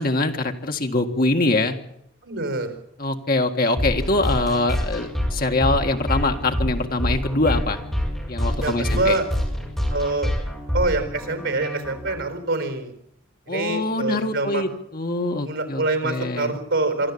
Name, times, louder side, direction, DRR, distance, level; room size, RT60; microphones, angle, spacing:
voice 1, 0.0-1.8 3.0-7.8 8.3-9.2 13.5-16.6, left 2 dB, 45° left, 4 dB, 1.7 m, -23 dB
voice 2, 2.2-2.7 8.6-9.3 9.9-10.3 10.7-12.9 13.5-14.6 15.4-17.1, right 2 dB, 70° right, 8 dB, 4.1 m, -25 dB
sound 1, 3.8-12.2, equal, ahead, 6.2 m, -26 dB
24.5 x 13.0 x 8.6 m, 0.74 s
head